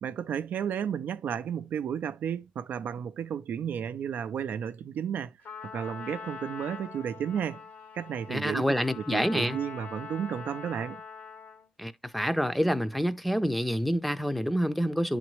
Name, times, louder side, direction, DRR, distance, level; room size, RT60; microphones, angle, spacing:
voice 1, 0.0-5.3 5.7-7.6 7.9-8.6 9.0-11.0, right 8 dB, 70° right, 0.4 m, -33 dB
Trumpet, 5.4-11.7, left 5 dB, 75° left, 1.6 m, -43 dB
voice 2, 8.3-9.6 11.8-15.2, equal, ahead, 0.6 m, -27 dB
10.5 x 3.9 x 3.1 m
cardioid pair, 100°, 3 cm